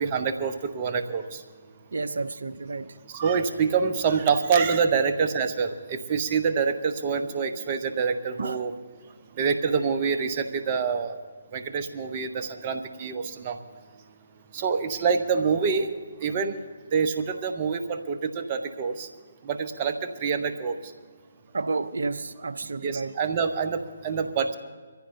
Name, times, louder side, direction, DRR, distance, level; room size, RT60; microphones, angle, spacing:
voice 1, 0.0-1.4 3.1-8.7 9.4-11.1 11.5-13.6 14.5-15.9 16.2-16.6 16.9-19.1 19.4-20.7 22.8-24.5, right 5 dB, 35° right, 7 dB, 1.2 m, -26 dB
voice 2, 1.9-2.9 8.4-8.6 21.5-23.2, right 3 dB, 65° right, 14 dB, 0.7 m, -31 dB
23.5 x 15.0 x 2.7 m, 1.5 s
figure-of-eight pair, 140°, 0 cm